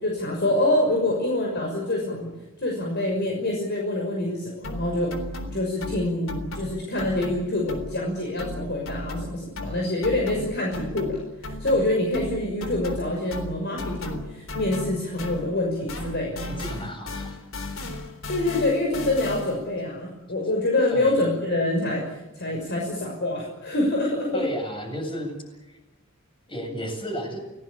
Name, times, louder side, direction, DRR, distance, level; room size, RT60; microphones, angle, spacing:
voice 1, 0.0-2.3 2.6-5.1 5.5-16.4 18.3-24.4, left 1 dB, 55° left, 0 dB, 6.1 m, -26 dB
sound 1, 4.6-8.1 8.4-15.6 15.9-19.7, left 1 dB, 70° left, 3.7 m, -35 dB
voice 2, 16.5-17.4 20.9-21.2 24.3-25.4 25.7-25.8 26.5-27.4, equal, 25° left, 4 dB, 8.0 m, -32 dB
29.5 x 18.5 x 8.7 m, 1.0 s
head